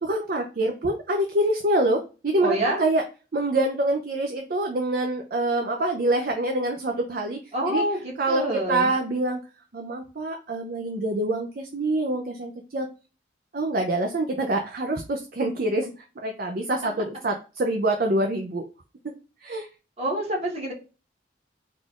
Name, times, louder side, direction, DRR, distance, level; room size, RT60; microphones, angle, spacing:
voice 1, 0.0-3.0 3.3-7.4 7.7-7.9 8.2-9.4 9.7-12.9 13.5-15.9 16.2-18.6 19.4-19.7, right 1 dB, 50° right, 4 dB, 0.5 m, -25 dB
voice 2, 2.4-2.9 7.5-8.9 20.0-20.7, right 1 dB, 35° right, -3 dB, 1.6 m, -27 dB
3.8 x 2.4 x 3.7 m, 0.32 s
head